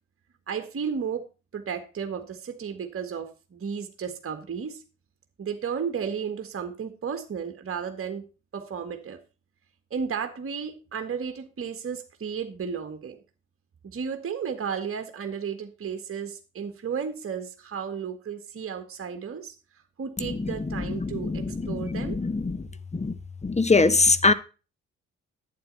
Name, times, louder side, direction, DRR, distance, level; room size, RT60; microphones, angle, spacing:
voice 1, 0.5-1.3 1.5-4.8 5.4-8.2 8.5-9.2 9.9-13.2 13.8-19.5 20.0-22.2, right 6 dB, 35° right, 1.7 m, -33 dB
voice 2, 21.0-22.6 22.9-23.1 23.4-24.3, left 3 dB, 20° left, 1.1 m, -23 dB
11.5 x 9.0 x 4.1 m
hypercardioid pair, 45°, 36 cm